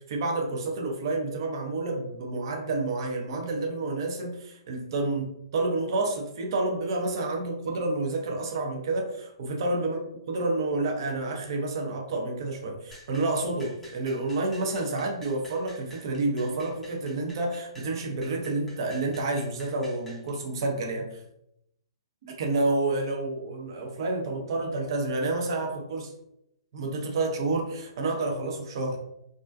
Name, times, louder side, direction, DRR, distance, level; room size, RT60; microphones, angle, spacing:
voice 1, 0.1-10.0 10.3-21.2 22.4-26.1 26.7-29.0, right 2 dB, 55° right, 2 dB, 0.5 m, -29 dB
sound 1, 12.9-20.3, equal, 5° left, 0.5 m, -50 dB
2.3 x 2.2 x 2.4 m, 0.80 s
figure-of-eight pair, 125°, 3 cm